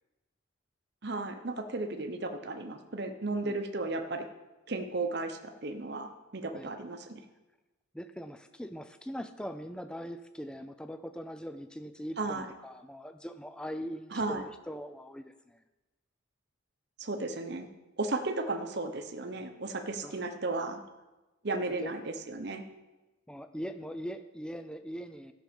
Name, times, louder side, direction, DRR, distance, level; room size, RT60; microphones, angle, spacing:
voice 1, 1.0-4.2 4.7-7.2 12.2-12.5 14.1-14.4 17.0-17.7 18.0-20.8 21.4-22.6, right 2 dB, 50° right, 6 dB, 0.9 m, -34 dB
voice 2, 7.9-15.6 20.0-20.1 21.8-21.9 23.3-25.3, equal, 5° left, 9 dB, 0.4 m, -41 dB
14.0 x 6.1 x 5.3 m, 1.1 s
head